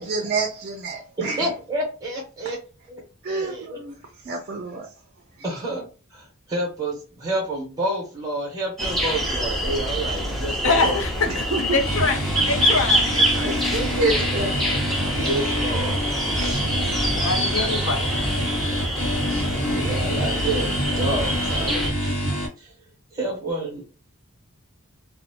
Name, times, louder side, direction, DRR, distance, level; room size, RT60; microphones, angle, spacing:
voice 1, 0.0-1.4 3.2-4.0 4.2-4.9 11.3-11.6 13.4-14.5 16.5-16.6, right 3 dB, 45° right, 0.5 m, -28 dB
voice 2, 1.2-2.6 3.3-3.8 5.4-5.8 6.2-11.0 14.0-14.4 15.1-16.0 16.4-16.7 17.4-17.5 19.7-22.3 22.6-22.7 23.1-23.8, right 1 dB, 15° right, 1.0 m, -29 dB
sound 1, 8.8-21.9, equal, ahead, 0.6 m, -25 dB
voice 3, 10.6-11.3 11.7-12.1 12.5-13.6 17.2-18.1, left 3 dB, 60° left, 0.5 m, -24 dB
sound 2, 11.8-22.5, equal, 75° left, 1.0 m, -27 dB
2.7 x 2.1 x 2.8 m
head